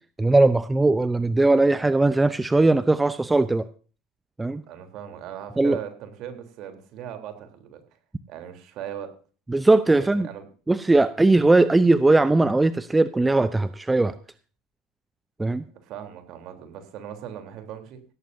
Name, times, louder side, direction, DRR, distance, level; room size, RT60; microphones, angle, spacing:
voice 1, 0.2-3.7 4.4-4.6 5.6-5.8 9.5-10.3 10.7-14.1 15.4-15.6, right 2 dB, 10° right, 15 dB, 0.7 m, -19 dB
voice 2, 4.7-7.8 8.3-9.1 10.0-10.5 15.7-18.0, right 9 dB, 55° right, 6 dB, 3.6 m, -38 dB
16.5 x 14.0 x 2.7 m, 0.38 s
hypercardioid pair, 80°, 0 cm